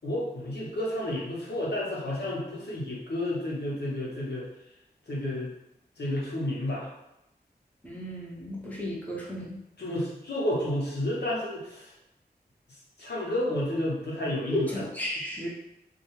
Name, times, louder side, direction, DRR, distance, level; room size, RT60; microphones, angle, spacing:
voice 1, 0.0-4.5 5.1-5.5 6.0-6.9 9.8-11.9 13.0-14.8, left 1 dB, 75° left, -5 dB, 0.8 m, -31 dB
voice 2, 7.8-9.6 14.5-15.5, equal, 10° left, -4 dB, 0.6 m, -33 dB
2.4 x 2.2 x 3.1 m, 0.87 s
wide cardioid pair, 85°, 18 cm